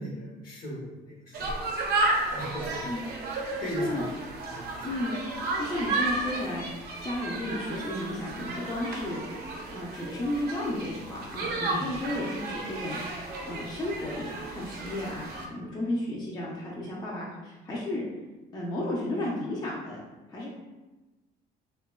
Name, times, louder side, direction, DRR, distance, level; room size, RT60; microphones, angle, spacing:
voice 1, 0.0-1.5 2.3-2.9 3.6-4.1 4.5-4.9 11.7-11.8, equal, 55° left, -3 dB, 0.9 m, -38 dB
sound 1, 1.3-15.5, right 2 dB, 65° right, 0.5 m, -33 dB
voice 2, 4.8-5.1 5.6-6.6 7.0-9.2 9.7-18.0 18.5-20.0 20.3-20.6, left 1 dB, 25° left, -5 dB, 0.4 m, -33 dB
2.8 x 2.2 x 2.2 m, 1.1 s
cardioid pair, 110°, 17 cm